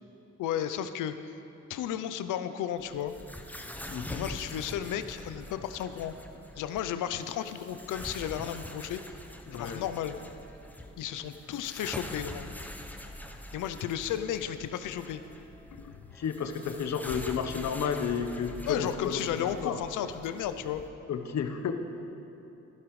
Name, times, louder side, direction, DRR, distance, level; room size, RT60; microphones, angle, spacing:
voice 1, 0.4-1.3 1.7-3.1 4.1-6.1 6.6-9.0 9.6-10.2 11.0-12.5 13.5-15.2 15.7-15.9 18.7-20.8, left 10 dB, 80° left, 11 dB, 0.6 m, -33 dB
sound 1, 2.8-20.9, left 1 dB, 5° left, 0.8 m, -44 dB
voice 2, 3.9-4.3 9.5-9.9 16.1-19.8 21.1-21.7, left 6 dB, 60° left, 7 dB, 1.0 m, -32 dB
15.0 x 11.5 x 3.2 m, 2.9 s
supercardioid pair, 65°, 30 cm